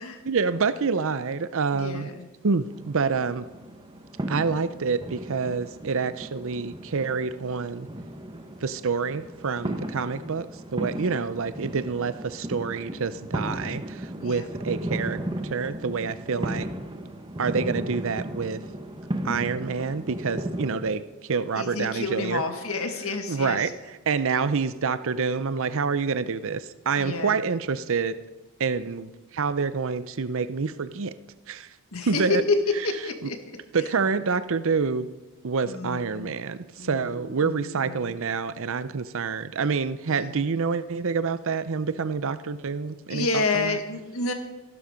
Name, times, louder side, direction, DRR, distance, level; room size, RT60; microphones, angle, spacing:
voice 1, 0.2-2.1 2.4-3.5 4.3-7.9 8.6-15.2 15.5-16.7 17.4-18.6 19.2-22.4 23.3-23.7 24.1-28.2 28.6-31.1 31.5-31.7 32.0-32.4 33.2-33.3 33.7-35.1 35.4-43.8, right 5 dB, 65° right, 13 dB, 0.6 m, -27 dB
voice 2, 1.7-2.3 10.1-10.4 10.9-11.2 14.2-14.5 21.5-23.7 27.0-27.4 31.9-32.3 32.8-33.4 33.8-33.9 35.6-36.3 36.8-38.1 40.1-40.5 43.1-44.3, left 3 dB, 75° left, 6 dB, 1.8 m, -31 dB
sound 1, 2.7-20.8, right 1 dB, 25° right, 1.3 m, -35 dB
14.5 x 12.0 x 5.2 m, 1.1 s
head